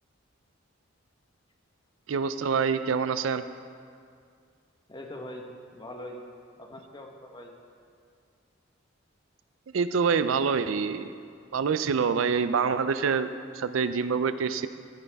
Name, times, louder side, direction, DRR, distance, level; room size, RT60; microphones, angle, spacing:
voice 1, 2.1-3.4 9.7-11.1 11.5-14.7, right 5 dB, 70° right, 12 dB, 0.4 m, -26 dB
voice 2, 4.9-5.5 5.7-6.2 6.6-7.5, left 1 dB, 20° left, 2 dB, 1.1 m, -42 dB
15.5 x 9.3 x 3.5 m, 2.3 s
head